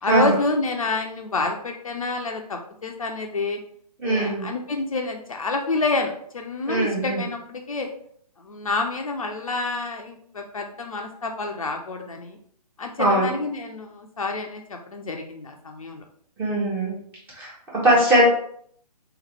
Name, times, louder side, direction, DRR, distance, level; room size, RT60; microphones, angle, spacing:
voice 1, 0.0-3.6 4.0-7.9 8.4-12.4 12.8-16.0, left 3 dB, 55° left, 3 dB, 0.6 m, -28 dB
voice 2, 4.0-4.5 6.7-7.2 13.0-13.3 16.4-17.0 17.4-18.3, right 1 dB, 10° right, -7 dB, 1.0 m, -20 dB
3.4 x 3.0 x 3.3 m, 0.63 s
figure-of-eight pair, 135°, 21 cm